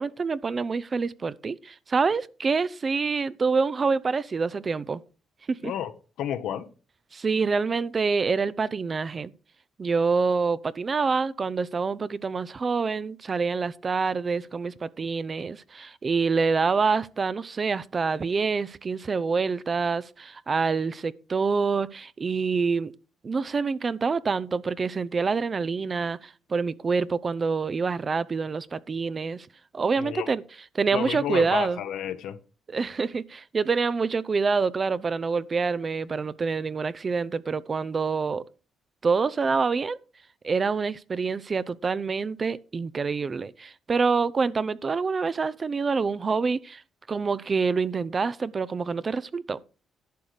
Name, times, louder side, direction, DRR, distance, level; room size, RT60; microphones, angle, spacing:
voice 1, 0.0-5.0 5.5-5.7 7.1-9.3 9.8-22.9 23.2-29.5 29.7-30.4 30.7-31.8 32.7-38.4 39.0-40.0 40.4-46.8 47.1-49.6, right 4 dB, 35° right, 0.5 m, -26 dB
voice 2, 6.2-6.7 30.0-30.3 30.9-32.4, left 10 dB, 80° left, 0.9 m, -31 dB
11.5 x 6.4 x 5.0 m
cardioid pair, 90°, 0 cm